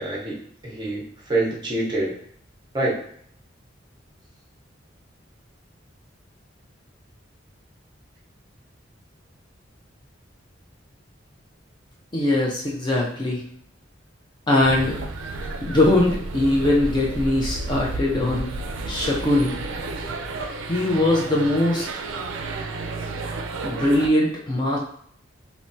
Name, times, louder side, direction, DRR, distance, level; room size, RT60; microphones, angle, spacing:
voice 1, 0.0-2.1 2.7-3.0, right 2 dB, 25° right, -4 dB, 0.7 m, -26 dB
voice 2, 12.1-13.5 14.5-15.0 15.6-18.6 18.9-19.6 20.7-21.9 23.6-24.8, left 1 dB, 25° left, -3 dB, 0.4 m, -21 dB
sound 1, 14.6-24.1, right 2 dB, 85° right, 0.4 m, -32 dB
3.2 x 2.1 x 2.6 m, 0.62 s
head